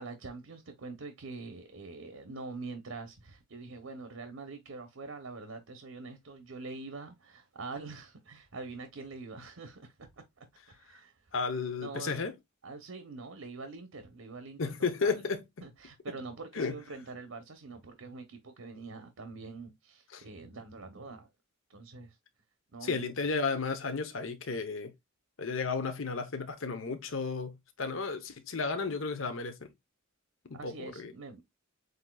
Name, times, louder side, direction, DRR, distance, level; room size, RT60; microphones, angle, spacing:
voice 1, 0.0-9.9 10.4-11.1 11.8-12.3 12.6-14.6 15.0-15.2 15.6-21.3 21.7-22.2 22.7-23.0 30.5-31.4, right 3 dB, 80° right, 0.9 m, -44 dB
voice 2, 11.3-12.3 14.6-15.4 16.5-16.8 20.1-20.2 22.8-24.9 25.4-29.7 30.5-31.1, left 4 dB, 70° left, 0.8 m, -33 dB
7.8 x 2.7 x 2.3 m
head